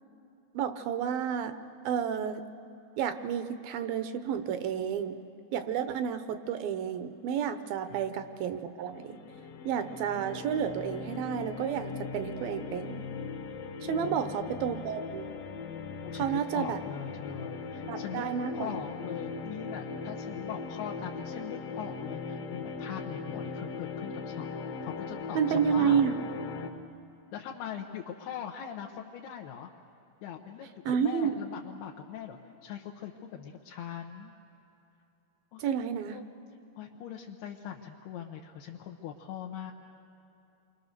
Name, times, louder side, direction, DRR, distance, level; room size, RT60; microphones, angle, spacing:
voice 1, 0.5-1.6 1.8-2.4 3.0-5.2 5.5-9.2 9.7-13.0 13.8-15.3 16.2-16.8 17.9-18.7 25.4-26.1 30.9-31.4 35.6-36.2, right 8 dB, 75° right, 9 dB, 2.5 m, -30 dB
sound 1, 8.8-26.7, left 4 dB, 65° left, 2.9 m, -39 dB
voice 2, 14.0-14.5 16.0-26.0 27.3-29.7 30.2-30.7 31.0-34.3 35.5-35.7 36.1-36.3 36.8-39.7, left 9 dB, 85° left, 0 dB, 3.1 m, -41 dB
29.0 x 24.0 x 6.7 m, 2.9 s
omnidirectional pair, 4.5 m